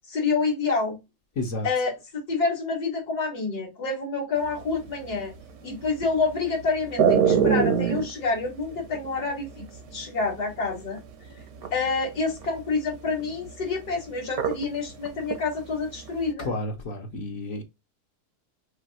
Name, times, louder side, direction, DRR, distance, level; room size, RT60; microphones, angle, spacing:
voice 1, 0.1-1.0 1.6-5.3 5.6-9.7 9.9-11.0 11.7-16.5, left 4 dB, 75° left, 2.7 m, -28 dB
voice 2, 1.4-1.7 16.4-17.6, left 2 dB, 55° left, 1.3 m, -31 dB
sound 1, 4.5-11.0 11.3-14.8 15.1-16.3, right 7 dB, 65° right, 1.4 m, -24 dB
6.2 x 2.8 x 2.9 m
omnidirectional pair, 1.7 m